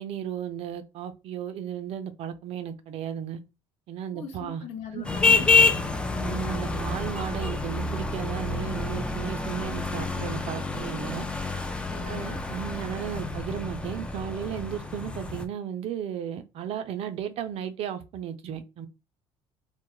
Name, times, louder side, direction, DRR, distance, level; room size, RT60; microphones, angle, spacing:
voice 1, 0.0-3.4 3.9-4.6 4.9-5.1 6.2-11.2 12.1-18.9, right 9 dB, 55° right, 0.4 m, -35 dB
voice 2, 4.1-6.0 11.9-12.4, left 6 dB, 70° left, 0.6 m, -40 dB
sound 1, 5.0-15.4, left 3 dB, 10° left, 0.3 m, -27 dB
2.2 x 2.0 x 3.0 m
supercardioid pair, 90°, 12 cm